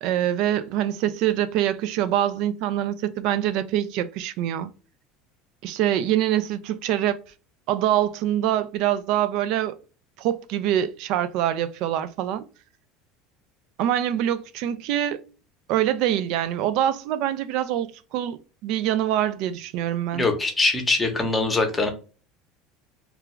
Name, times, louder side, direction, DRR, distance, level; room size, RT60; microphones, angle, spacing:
voice 1, 0.0-4.7 5.6-7.2 7.7-9.8 10.2-12.4 13.8-15.2 15.7-20.3, right 11 dB, 60° right, 0.3 m, -24 dB
voice 2, 20.1-21.9, left 3 dB, 15° left, 0.7 m, -22 dB
2.4 x 2.3 x 3.0 m
supercardioid pair, 135°, 0 cm